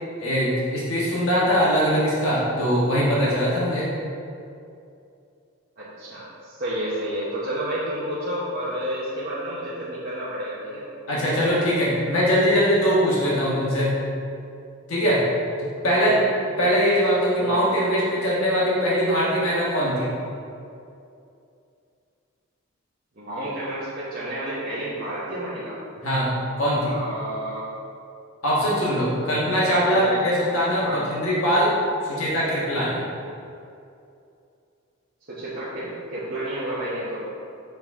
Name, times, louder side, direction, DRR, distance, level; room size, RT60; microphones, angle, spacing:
voice 1, 0.2-3.9 11.1-14.0 14.9-15.2 15.6-16.2 16.6-20.1 26.0-26.9 28.4-31.7 32.0-33.0, equal, 85° left, -7 dB, 1.4 m, -22 dB
voice 2, 5.8-10.8 16.0-16.4 17.4-17.6 23.1-25.8 26.9-27.6 29.8-30.2 30.8-31.0 35.3-37.2, right 1 dB, 45° right, -11 dB, 1.1 m, -30 dB
6.8 x 3.9 x 3.6 m, 2.6 s
head